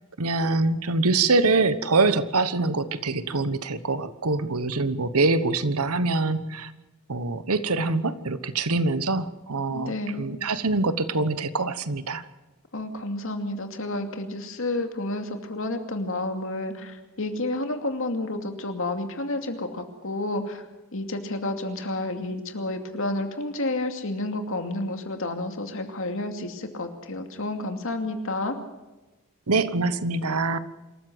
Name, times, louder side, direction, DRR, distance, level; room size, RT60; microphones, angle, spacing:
voice 1, 0.2-6.7 7.1-12.2 29.5-30.6, right 3 dB, 85° right, 14 dB, 1.2 m, -24 dB
voice 2, 9.7-10.3 12.7-20.6 20.9-28.6, left 2 dB, 65° left, 6 dB, 2.5 m, -30 dB
26.0 x 14.0 x 8.0 m, 1.1 s
head